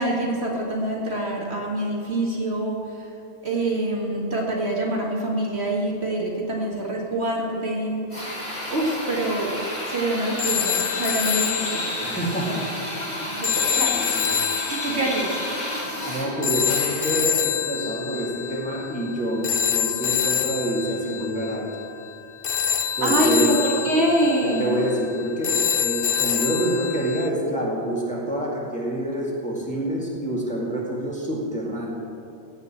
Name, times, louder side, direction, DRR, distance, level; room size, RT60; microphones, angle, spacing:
voice 1, 0.0-3.0 3.4-8.0 8.7-9.5 9.8-11.9 12.5-12.6 13.1-13.9 14.7-15.3 23.0-24.8, right 1 dB, 60° right, -2 dB, 2.2 m, -25 dB
Drill, 8.1-17.4, equal, 25° left, 3.3 m, -31 dB
sound 1, 10.4-27.3, left 9 dB, 55° left, 0.9 m, -27 dB
voice 2, 12.0-12.8 13.9-14.4 16.1-21.7 23.0-23.5 24.4-31.9, right 1 dB, 5° left, -4 dB, 2.2 m, -27 dB
16.5 x 5.5 x 8.5 m, 2.6 s
omnidirectional pair, 1.2 m